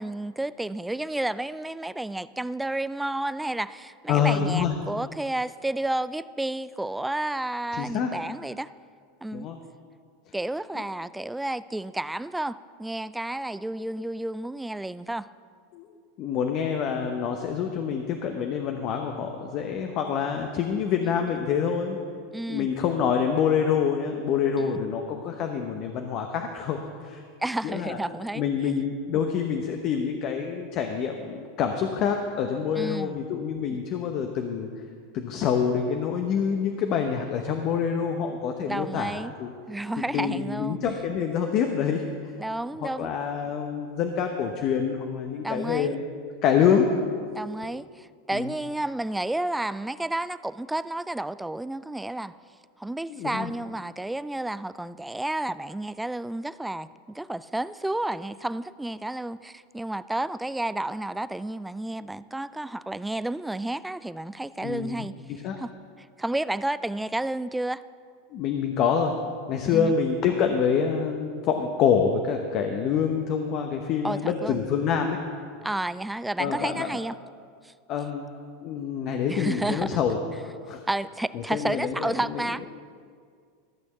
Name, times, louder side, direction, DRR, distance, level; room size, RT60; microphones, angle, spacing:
voice 1, 0.0-8.7 9.2-9.5 10.3-15.3 22.3-22.7 24.6-24.7 27.4-28.7 32.8-33.2 38.7-39.3 39.7-40.8 42.4-43.1 45.4-45.9 47.3-52.4 52.8-65.1 65.6-65.7 66.0-67.8 69.7-69.9 74.0-74.6 75.6-77.2 77.6-77.7 79.3-80.0 80.9-82.6, right 1 dB, 5° right, 16 dB, 0.3 m, -31 dB
voice 2, 4.1-4.7 7.7-8.1 9.3-9.6 15.7-15.9 16.2-22.0 22.5-27.2 27.6-28.0 28.3-34.7 35.1-39.5 40.1-42.3 42.8-46.0 46.4-46.9 48.3-48.5 53.1-53.5 64.6-65.1 65.4-65.6 68.3-69.1 69.5-75.2 76.4-76.9 77.9-78.2 78.6-80.2 80.7-80.8 81.3-82.4, left 7 dB, 50° left, 4 dB, 0.9 m, -26 dB
14.0 x 6.3 x 7.1 m, 2.1 s
hypercardioid pair, 100°, 0 cm